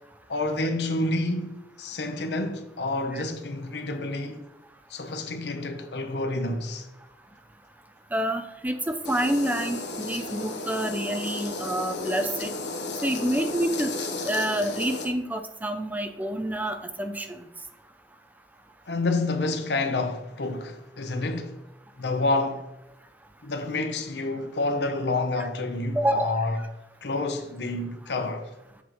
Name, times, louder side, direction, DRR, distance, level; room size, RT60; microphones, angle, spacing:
voice 1, 0.3-4.4 4.9-6.9 18.9-21.6 22.0-22.6 23.4-26.5 27.0-28.5, left 2 dB, 70° left, 0.8 m, -28 dB
voice 2, 8.1-12.5 13.0-13.9 14.2-17.5 25.4-25.5 25.9-26.3, right 1 dB, 10° right, 0.4 m, -28 dB
sound 1, 9.0-15.1, left 3 dB, 85° left, 1.0 m, -34 dB
7.4 x 6.0 x 3.0 m
head